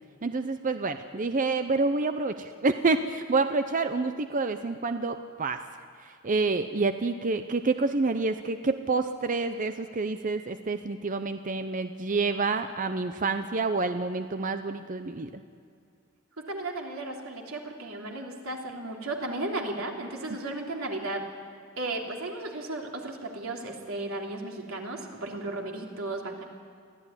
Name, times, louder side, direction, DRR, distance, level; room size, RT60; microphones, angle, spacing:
voice 1, 0.2-5.6 6.2-15.3, right 3 dB, 40° right, 9 dB, 0.7 m, -28 dB
voice 2, 16.4-21.2 21.8-26.4, right 2 dB, 90° right, 0 dB, 3.2 m, -35 dB
23.5 x 15.5 x 9.9 m, 2.2 s
head